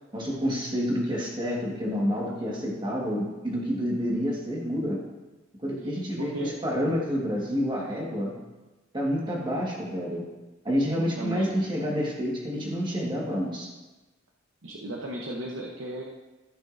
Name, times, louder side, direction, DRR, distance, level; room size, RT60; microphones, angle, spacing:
voice 1, 0.1-5.0 5.6-8.3 8.9-10.2 10.6-13.7, equal, 25° right, -3 dB, 1.5 m, -28 dB
voice 2, 5.8-6.5 11.2-11.5 14.6-16.0, right 2 dB, 90° right, -1 dB, 0.8 m, -35 dB
13.5 x 6.3 x 2.6 m, 1.1 s
head